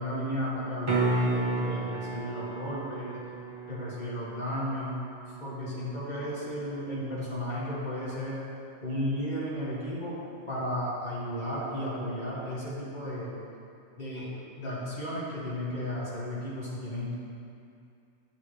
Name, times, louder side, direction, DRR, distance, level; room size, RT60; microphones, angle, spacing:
voice 1, 0.0-3.2 3.7-5.0 5.4-8.4 8.8-10.2 10.5-13.3 14.0-17.1, equal, 40° left, -8 dB, 2.3 m, -34 dB
sound 1, 0.8-6.9 11.6-11.7, right 3 dB, 30° right, 0.8 m, -34 dB
9.8 x 7.7 x 3.2 m, 2.5 s
omnidirectional pair, 1.2 m